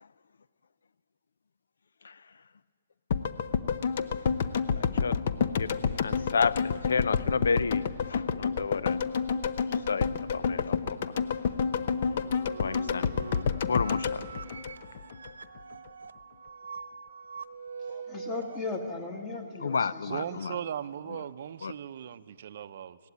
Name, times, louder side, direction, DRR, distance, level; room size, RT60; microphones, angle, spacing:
sound 1, 3.1-15.3 15.6-15.7, left 6 dB, 50° left, 0.8 m, -29 dB
voice 1, 4.8-5.2 5.6-9.0 9.9-10.8 12.6-13.2 13.6-14.2 19.6-20.6 21.6-21.7, left 5 dB, 80° left, 0.5 m, -31 dB
sound 2, 12.1-18.6, right 5 dB, 90° right, 1.0 m, -43 dB
voice 2, 17.9-20.6, left 3 dB, 20° left, 1.9 m, -38 dB
voice 3, 20.1-23.0, right 9 dB, 55° right, 0.6 m, -37 dB
17.5 x 15.0 x 9.8 m
hypercardioid pair, 150°, 0 cm